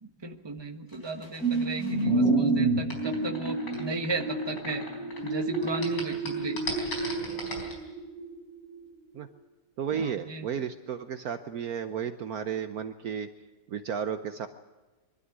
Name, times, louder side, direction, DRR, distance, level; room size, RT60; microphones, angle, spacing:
voice 1, 0.0-4.8 5.2-6.6 9.9-10.5, right 3 dB, 15° right, 5 dB, 1.3 m, -36 dB
sound 1, 0.9-5.3 5.5-7.7, left 2 dB, 85° left, 5.2 m, -31 dB
sound 2, 1.4-8.8 9.3-9.4, right 4 dB, 50° left, 4.5 m, -30 dB
voice 2, 9.8-13.3 13.7-14.5, right 7 dB, 60° right, 10 dB, 1.2 m, -33 dB
23.0 x 12.5 x 9.6 m, 1.2 s
omnidirectional pair, 1.9 m